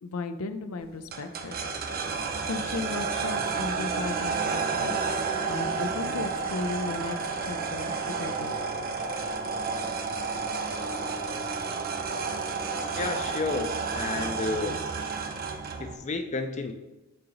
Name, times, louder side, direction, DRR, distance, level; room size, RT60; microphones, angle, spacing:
voice 1, 0.0-1.6 2.5-5.0 5.5-8.6, left 3 dB, 85° left, 10 dB, 0.5 m, -35 dB
sound 1, 1.1-15.9, right 4 dB, 45° right, 0.6 m, -31 dB
voice 2, 12.9-14.8 15.8-16.7, left 3 dB, 35° left, 7 dB, 0.4 m, -31 dB
7.8 x 2.9 x 5.0 m, 1.0 s
head